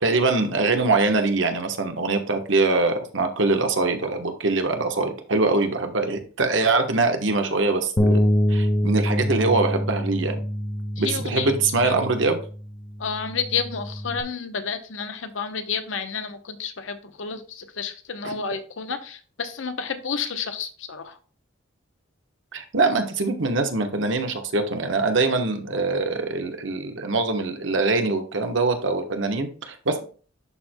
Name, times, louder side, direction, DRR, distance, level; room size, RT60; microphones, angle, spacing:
voice 1, 0.0-8.2 8.5-10.4 11.0-12.4 18.2-18.3 22.5-30.0, right 3 dB, 70° right, 6 dB, 1.1 m, -23 dB
Bass guitar, 8.0-14.2, equal, 20° left, 0.6 m, -25 dB
voice 2, 11.0-11.5 11.8-11.9 13.0-21.2, left 6 dB, 80° left, 9 dB, 0.8 m, -30 dB
11.0 x 4.5 x 2.2 m, 0.39 s
head